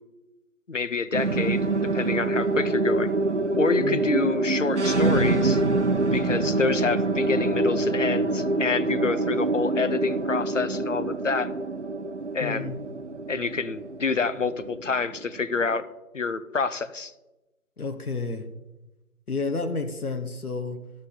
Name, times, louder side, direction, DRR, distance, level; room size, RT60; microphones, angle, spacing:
voice 1, 0.7-1.7 1.9-3.1 3.5-5.6 6.1-11.5 12.3-12.8 13.3-15.8 16.1-17.1, left 4 dB, 55° left, 14 dB, 0.7 m, -27 dB
sound 1, 1.1-15.7, right 2 dB, 50° right, 0.6 m, -25 dB
voice 2, 3.8-4.1 12.4-12.8 17.8-18.4 19.3-20.8, left 3 dB, 70° left, 7 dB, 1.2 m, -30 dB
13.5 x 6.6 x 3.7 m, 1.0 s
figure-of-eight pair, 175°, 46 cm